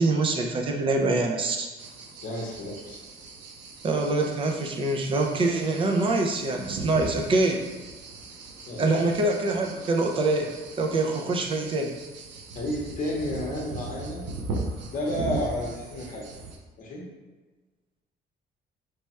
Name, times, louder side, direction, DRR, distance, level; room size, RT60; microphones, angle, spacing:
voice 1, 0.0-1.7 3.8-7.6 8.8-10.5 10.8-11.9, right 2 dB, 30° right, 2 dB, 0.4 m, -25 dB
sound 1, 1.8-16.6, right 2 dB, 90° right, 0.6 m, -39 dB
voice 2, 2.2-3.0 8.7-9.1 12.5-14.2 14.9-16.2 16.8-17.1, left 1 dB, 50° left, -1 dB, 0.8 m, -31 dB
3.3 x 2.3 x 4.1 m, 1.3 s
cardioid pair, 175°, 18 cm